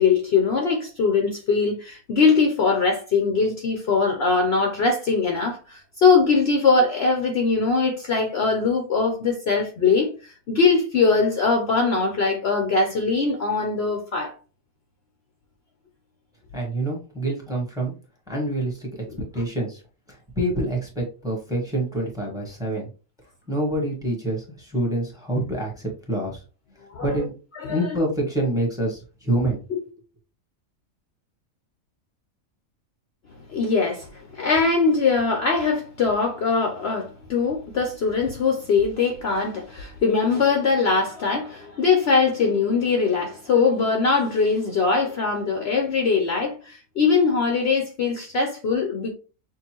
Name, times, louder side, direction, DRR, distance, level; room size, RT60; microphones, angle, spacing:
voice 1, 0.0-14.3 26.9-27.3 27.6-28.0 29.7-29.8 33.5-49.1, left 4 dB, 55° left, 0.9 m, -21 dB
voice 2, 16.5-17.9 18.3-18.9 19.3-19.8 20.1-22.9 23.5-26.4 27.0-27.3 27.7-29.6, right 1 dB, 5° right, 1.3 m, -26 dB
6.2 x 2.5 x 2.9 m
omnidirectional pair, 1.4 m